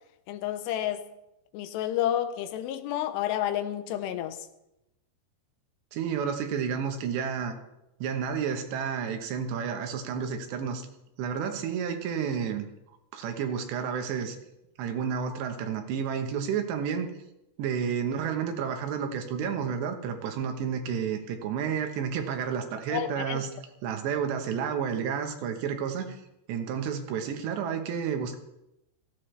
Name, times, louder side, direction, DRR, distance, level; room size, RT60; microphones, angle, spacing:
voice 1, 0.3-1.1 1.5-4.4 22.9-23.4, left 11 dB, 85° left, 2.9 m, -30 dB
voice 2, 5.9-7.6 8.0-10.9 11.2-12.7 13.1-14.4 14.8-17.1 17.6-23.5 23.8-26.2 26.5-28.4, right 7 dB, 90° right, 3.5 m, -31 dB
17.0 x 14.5 x 3.3 m
omnidirectional pair, 4.9 m